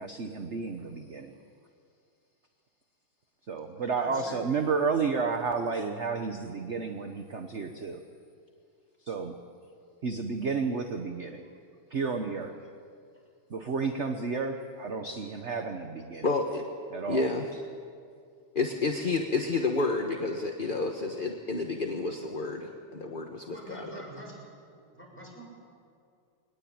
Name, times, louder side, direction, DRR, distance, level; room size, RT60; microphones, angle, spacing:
voice 1, 0.0-1.3 3.5-8.0 9.0-9.4 10.0-11.4 11.9-12.6 13.5-16.3 16.9-17.2, right 4 dB, 40° right, 5 dB, 1.1 m, -31 dB
voice 2, 3.9-4.4 23.5-24.4 24.7-25.4, right 1 dB, 5° left, -2 dB, 7.2 m, -45 dB
voice 3, 16.2-16.6 17.1-17.5 18.5-23.9, left 3 dB, 30° left, 3 dB, 1.1 m, -30 dB
22.5 x 19.5 x 8.8 m, 2.3 s
omnidirectional pair, 2.4 m